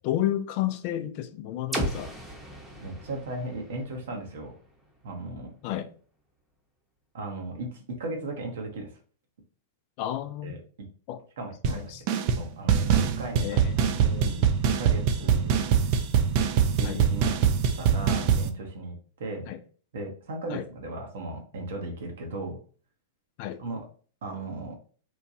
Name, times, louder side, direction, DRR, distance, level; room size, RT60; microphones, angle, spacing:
voice 1, 0.0-2.1 5.6-5.9 10.0-10.6 11.1-11.2 11.7-12.2 13.4-14.3 16.8-17.0 19.5-19.6 20.5-20.6 23.4-23.6, left 12 dB, 50° left, 0.3 m, -32 dB
sound 1, 1.7-5.6, right 1 dB, 10° right, 0.7 m, -37 dB
voice 2, 2.8-4.5 5.0-5.5 7.1-8.9 10.4-10.9 11.4-11.8 12.4-12.9 13.2-15.9 16.7-17.3 17.8-19.5 19.9-22.6 23.6-23.8 24.2-24.8, right 2 dB, 65° right, 0.7 m, -36 dB
sound 2, 11.6-11.8 12.1-12.4 12.7-18.5, right 7 dB, 50° right, 0.3 m, -23 dB
3.0 x 2.2 x 2.6 m
figure-of-eight pair, 100°, 0 cm